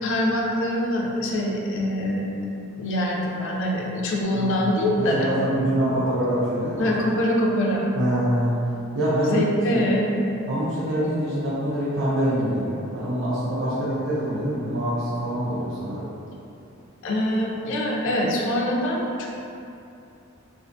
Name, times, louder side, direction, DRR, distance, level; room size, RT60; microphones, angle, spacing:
voice 1, 0.0-2.3 2.8-5.4 6.8-7.9 9.3-10.1 17.0-19.3, left 1 dB, 65° left, -1 dB, 0.4 m, -24 dB
voice 2, 4.3-6.9 8.0-8.5 8.9-9.9 10.5-16.1, right 1 dB, 85° right, -11 dB, 0.6 m, -25 dB
2.4 x 2.2 x 2.5 m, 2.7 s
head